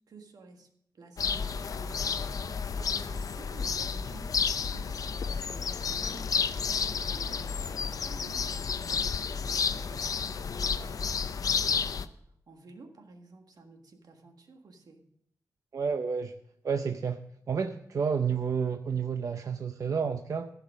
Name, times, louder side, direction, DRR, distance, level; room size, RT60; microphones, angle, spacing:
voice 1, 0.1-0.7 0.9-2.4 2.9-12.0 12.5-15.0, right 3 dB, 75° right, 4 dB, 1.6 m, -52 dB
sound 1, 1.2-12.0, left 6 dB, 65° left, 0.5 m, -31 dB
voice 2, 15.7-16.3 16.6-17.2 17.5-20.5, right 6 dB, 55° right, 7 dB, 0.5 m, -30 dB
14.5 x 5.8 x 6.2 m, 0.72 s
wide cardioid pair, 160°, 7 cm